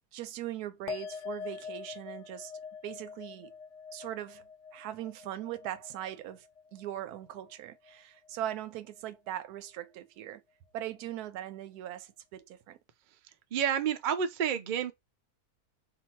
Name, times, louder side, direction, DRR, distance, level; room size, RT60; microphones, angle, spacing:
voice 1, 0.1-2.5 2.8-3.5 3.9-4.5 4.7-6.5 6.7-10.4 10.7-12.8, right 12 dB, 80° right, 1.1 m, -40 dB
sound 1, 0.9-7.6 7.8-8.5, left 6 dB, 65° left, 0.8 m, -44 dB
voice 2, 13.5-14.9, right 8 dB, 65° right, 0.4 m, -29 dB
2.9 x 2.6 x 4.3 m
omnidirectional pair, 1.6 m